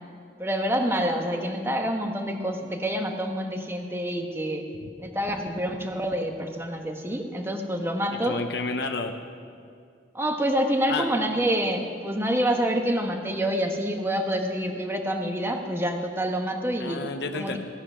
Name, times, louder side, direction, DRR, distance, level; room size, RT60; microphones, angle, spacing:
voice 1, 0.4-4.6 5.0-8.4 10.1-17.0 17.3-17.6, equal, 15° right, 3 dB, 1.2 m, -27 dB
voice 2, 8.2-9.1 10.9-11.1 16.8-17.6, left 3 dB, 65° left, 5 dB, 0.8 m, -30 dB
15.5 x 10.5 x 6.2 m, 2.3 s
head